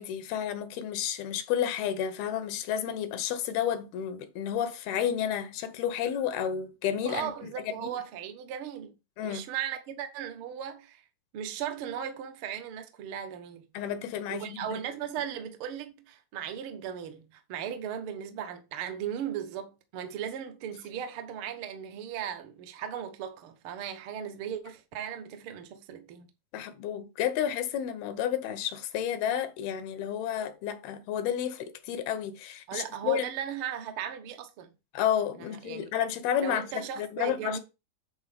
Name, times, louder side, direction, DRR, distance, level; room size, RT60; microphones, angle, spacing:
voice 1, 0.0-7.5 7.8-7.9 9.2-9.4 13.7-14.8 26.5-33.3 34.9-37.6, left 9 dB, 85° left, 2.8 m, -31 dB
voice 2, 7.0-8.9 9.2-11.0 11.3-13.7 14.3-26.3 32.7-34.7 35.6-35.9 36.4-37.6, right 9 dB, 80° right, 1.2 m, -37 dB
9.6 x 3.9 x 5.2 m
omnidirectional pair, 4.3 m